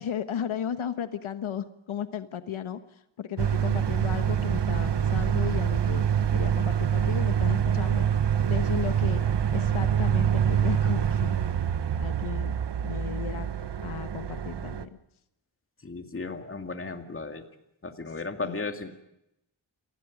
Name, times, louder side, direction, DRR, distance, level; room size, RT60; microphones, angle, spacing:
voice 1, 0.0-8.1 8.5-9.2 9.5-11.4 12.0-13.5 13.8-14.9 18.4-18.6, left 9 dB, 90° left, 10 dB, 1.3 m, -35 dB
sound 1, 3.4-14.8, right 8 dB, 60° right, 1.2 m, -25 dB
voice 2, 15.8-17.5 17.8-18.9, left 3 dB, 25° left, 6 dB, 2.2 m, -35 dB
28.0 x 20.0 x 5.1 m, 0.82 s
wide cardioid pair, 145°, 48 cm